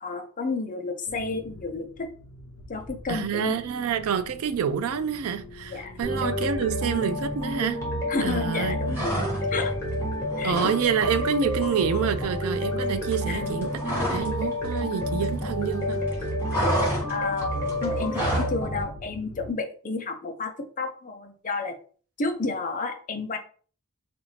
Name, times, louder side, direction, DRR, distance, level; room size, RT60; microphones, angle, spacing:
voice 1, 0.0-2.1 2.7-3.6 5.7-6.3 8.1-9.2 9.5-9.7 10.4-10.8 13.3-13.6 17.1-17.5 17.8-21.8 22.2-23.4, left 3 dB, 40° left, 0.6 m, -31 dB
sound 1, 1.1-19.5, left 1 dB, 75° left, 0.8 m, -45 dB
voice 2, 3.1-7.8 8.2-8.8 10.4-13.7 14.0-16.0, right 7 dB, 75° right, 0.3 m, -27 dB
sound 2, 6.0-18.8, left 1 dB, 15° left, 1.4 m, -29 dB
sound 3, 8.9-9.7 10.0-10.8 11.1-11.3 11.6-14.4 14.6-15.7 16.0-18.6, right 1 dB, 10° right, 1.6 m, -30 dB
4.1 x 2.5 x 3.1 m
head